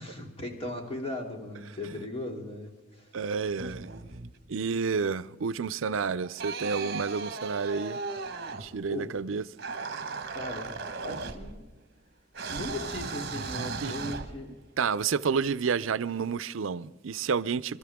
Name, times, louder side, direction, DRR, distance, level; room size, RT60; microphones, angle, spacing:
voice 1, 0.0-3.1 7.2-7.3 8.9-9.1 10.3-11.6 12.5-14.5, left 1 dB, 30° left, 2.9 m, -38 dB
voice 2, 3.1-3.9 4.5-8.0 8.6-9.4 13.8-14.1 14.8-17.8, right 5 dB, 80° right, 0.5 m, -30 dB
sound 1, 3.5-4.5 6.2-8.9 9.6-11.8 12.3-14.7, right 4 dB, 50° right, 1.5 m, -37 dB
27.5 x 13.5 x 3.6 m
head